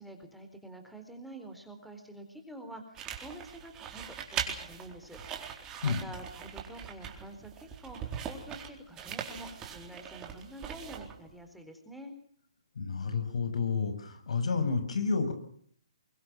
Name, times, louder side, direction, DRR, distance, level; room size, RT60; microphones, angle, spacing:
voice 1, 0.0-5.2 5.5-12.1, right 1 dB, ahead, 4 dB, 4.1 m, -47 dB
sound 1, 2.9-11.3, right 8 dB, 20° right, 4.1 m, -41 dB
voice 2, 12.7-15.3, left 5 dB, 70° left, 9 dB, 6.6 m, -30 dB
24.0 x 23.0 x 6.0 m, 0.62 s
hypercardioid pair, 145°, 3 cm